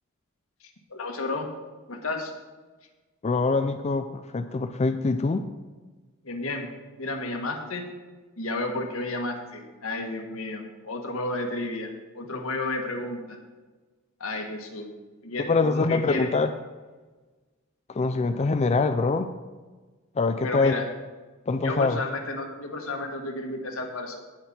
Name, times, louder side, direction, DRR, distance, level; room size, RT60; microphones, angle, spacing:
voice 1, 0.9-1.5 1.9-2.3 6.2-6.7 7.0-7.9 8.4-13.4 14.2-14.9 15.2-16.3 20.4-20.9 21.6-24.2, left 2 dB, 75° left, 3 dB, 1.6 m, -32 dB
voice 2, 3.2-5.5 15.5-16.5 17.9-19.3 20.2-20.7 21.5-22.0, left 3 dB, 30° left, 8 dB, 0.4 m, -24 dB
18.0 x 6.1 x 4.3 m, 1.3 s
head